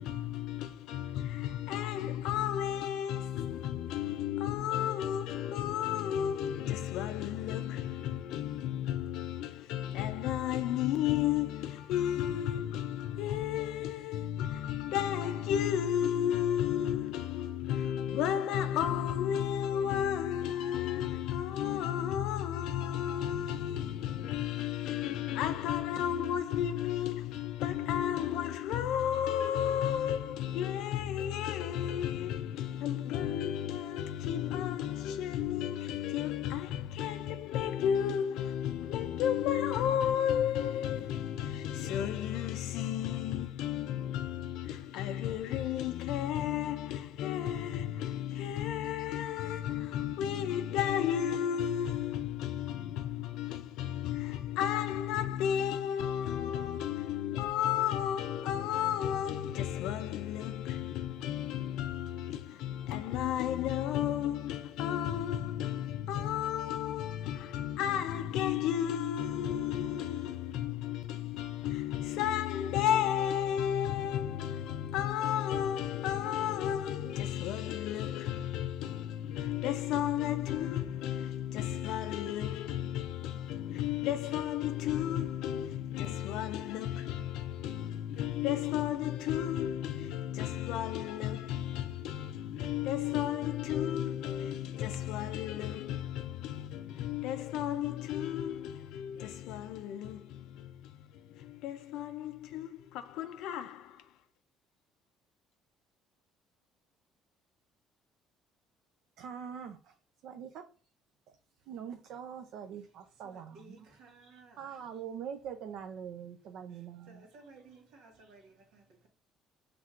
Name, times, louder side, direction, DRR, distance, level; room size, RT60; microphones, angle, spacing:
voice 1, 0.0-104.1, left 10 dB, 75° left, 0.3 m, -33 dB
voice 2, 109.2-109.9 110.2-110.6 111.7-117.3 118.2-118.3, right 8 dB, 60° right, 0.5 m, -44 dB
voice 3, 113.2-114.8 116.7-119.1, right 3 dB, 80° right, 1.5 m, -57 dB
5.8 x 3.2 x 2.4 m
cardioid pair, 170°, 0 cm